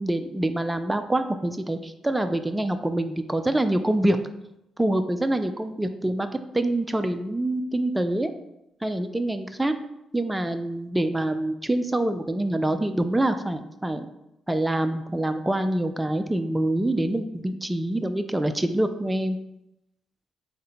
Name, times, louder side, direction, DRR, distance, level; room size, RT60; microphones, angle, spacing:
voice 1, 0.0-4.2 4.8-6.3 6.5-8.3 8.8-9.8 10.1-14.1 14.5-19.4, right 1 dB, 10° right, 8 dB, 0.4 m, -25 dB
3.6 x 2.7 x 4.2 m, 0.86 s
hypercardioid pair, 50°, 0 cm